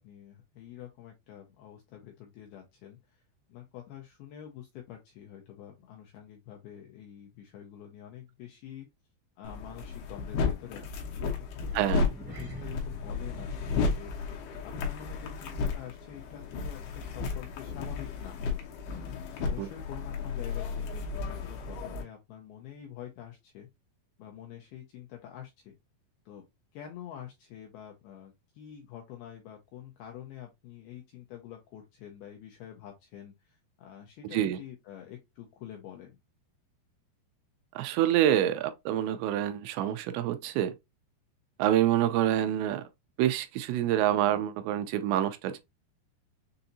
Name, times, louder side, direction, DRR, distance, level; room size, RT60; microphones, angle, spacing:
voice 1, 0.0-3.2 3.5-8.9 9.4-10.9 11.4-11.8 12.3-14.1 14.6-18.4 18.9-23.7 24.2-25.7 26.3-26.4 26.7-36.2, left 10 dB, 85° left, 2.2 m, -47 dB
sound 1, 9.4-22.0, left 4 dB, 70° left, 2.7 m, -33 dB
voice 2, 11.8-12.1 19.6-19.7 34.3-34.6 37.8-40.7 41.6-42.8 43.2-45.6, right 12 dB, 85° right, 2.7 m, -27 dB
sound 2, 11.9-16.6 16.8-17.1 17.6-17.7, equal, 10° right, 0.6 m, -49 dB
6.9 x 2.6 x 2.7 m
omnidirectional pair, 5.3 m